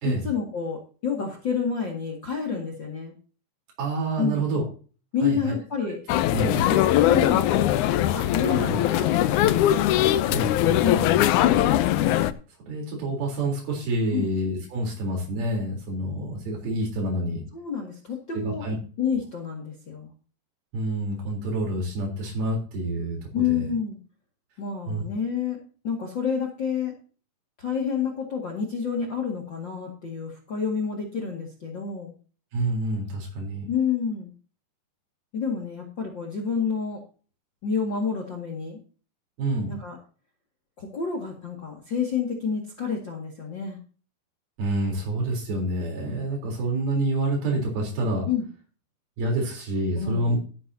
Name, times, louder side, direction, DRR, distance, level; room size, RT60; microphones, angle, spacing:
voice 1, 0.0-3.1 4.2-4.5 5.1-6.0 6.7-7.7 8.1-9.8 10.8-11.1 14.1-14.3 17.5-18.6 19.0-20.1 23.3-24.0 24.6-25.6 25.8-26.9 27.6-32.1 33.7-34.3 35.3-37.0 37.6-38.8 39.7-40.0 40.8-43.8 48.3-48.4 49.9-50.3, left 6 dB, 35° left, 1 dB, 2.2 m, -29 dB
voice 2, 3.8-4.6 5.2-5.9 6.3-6.7 8.5-8.8 10.3-11.2 12.7-17.4 18.4-18.8 20.7-23.2 23.5-23.6 24.9-25.0 32.5-33.7 39.4-39.8 44.6-48.3 49.2-50.4, right 1 dB, 75° right, 0 dB, 5.6 m, -28 dB
sound 1, 6.1-12.3, left 13 dB, 90° left, 1.7 m, -21 dB
13.5 x 12.0 x 2.8 m, 0.37 s
omnidirectional pair, 4.3 m